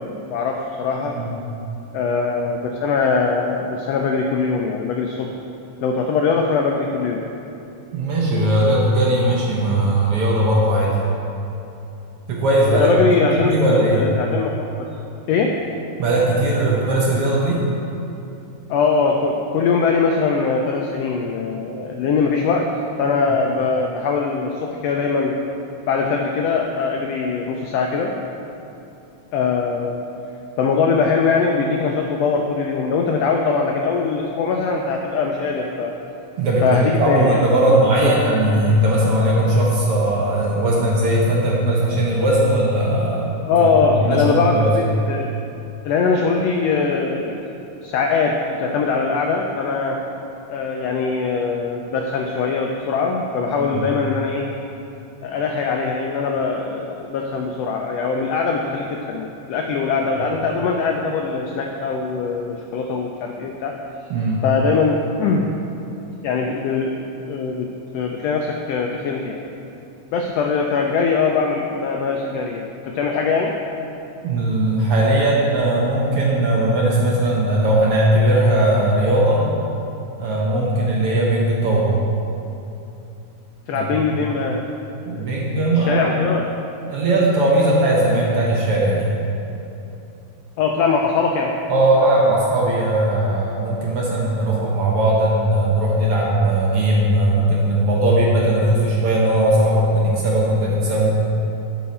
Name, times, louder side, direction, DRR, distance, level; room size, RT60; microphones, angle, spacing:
voice 1, 0.0-1.2 1.9-5.3 5.8-7.3 12.7-14.9 15.3-15.5 18.7-22.7 23.0-25.4 25.9-28.1 29.3-30.0 30.6-35.9 36.6-37.4 37.7-37.8 38.0-38.1 43.5-45.3 45.8-47.4 47.8-50.0 50.5-54.4 55.2-63.8 64.4-65.5 66.2-67.0 67.3-67.7 67.9-69.4 70.1-73.5 83.7-84.7 85.1-85.3 85.7-86.4 90.6-91.5, left 5 dB, 85° left, 2 dB, 1.4 m, -21 dB
voice 2, 7.9-11.0 12.3-14.1 16.0-17.6 36.4-44.7 53.6-53.8 60.2-60.3 64.1-64.4 74.2-79.4 80.2-82.0 83.7-84.2 85.0-86.1 86.9-89.1 91.7-101.2, right 1 dB, 65° right, -4 dB, 1.5 m, -18 dB
11.5 x 4.7 x 4.2 m, 2.9 s
omnidirectional pair, 3.4 m